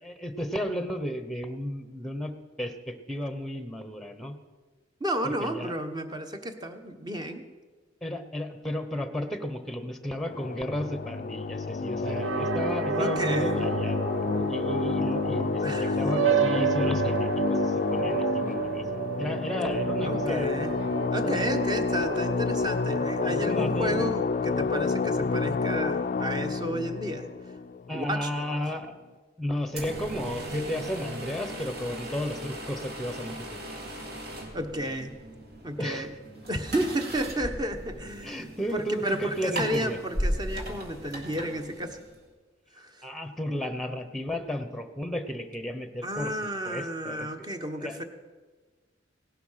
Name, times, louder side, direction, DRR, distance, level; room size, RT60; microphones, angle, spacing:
voice 1, 0.0-2.3 2.6-4.4 5.2-5.7 8.0-20.5 21.2-21.5 23.2-24.0 27.9-28.9 29.4-33.6 35.8-36.1 38.2-40.0 43.0-46.4 46.6-47.3 47.8-48.0, equal, ahead, 9 dB, 1.0 m, -33 dB
voice 2, 5.0-7.4 12.9-13.5 15.6-16.3 20.0-20.7 21.1-27.3 27.9-28.5 34.5-35.1 35.6-36.1 36.5-42.0 42.7-43.1 46.0-48.0, equal, 25° right, 6 dB, 1.2 m, -32 dB
sound 1, 10.2-28.4, left 4 dB, 45° left, 0.4 m, -29 dB
sound 2, 12.0-24.0, right 7 dB, 75° right, 0.5 m, -31 dB
sound 3, 29.7-42.2, equal, 55° right, 2.6 m, -37 dB
17.0 x 11.5 x 5.7 m, 1.4 s
head